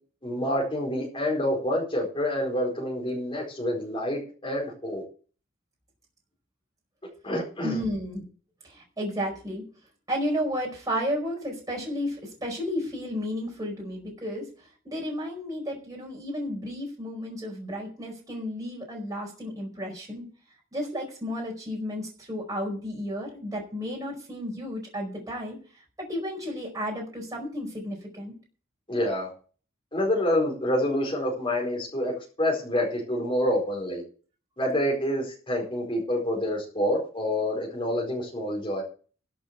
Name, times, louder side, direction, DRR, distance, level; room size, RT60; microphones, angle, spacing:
voice 1, 0.2-5.0 7.2-7.8 28.9-29.3 29.9-32.1 32.4-34.0 34.6-38.8, left 1 dB, 25° left, -3 dB, 4.8 m, -27 dB
voice 2, 7.6-8.2 8.6-9.6 10.1-14.5 14.8-20.2 20.7-25.6 26.0-28.3, equal, 15° right, -1 dB, 4.8 m, -32 dB
11.5 x 7.6 x 8.3 m, 0.40 s
head